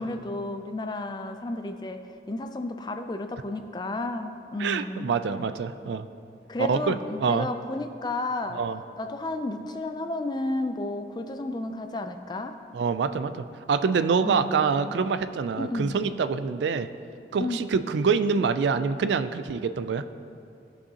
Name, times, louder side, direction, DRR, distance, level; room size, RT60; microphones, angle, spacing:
voice 1, 0.0-5.1 6.5-8.6 9.0-12.6 14.2-15.0 15.6-16.0 17.4-17.6, left 2 dB, 25° left, 7 dB, 0.3 m, -32 dB
voice 2, 4.6-6.1 6.6-7.0 7.2-7.5 8.5-8.8 12.7-16.9 17.3-20.1, right 5 dB, 80° right, 12 dB, 0.3 m, -26 dB
16.0 x 5.4 x 2.8 m, 2.6 s
head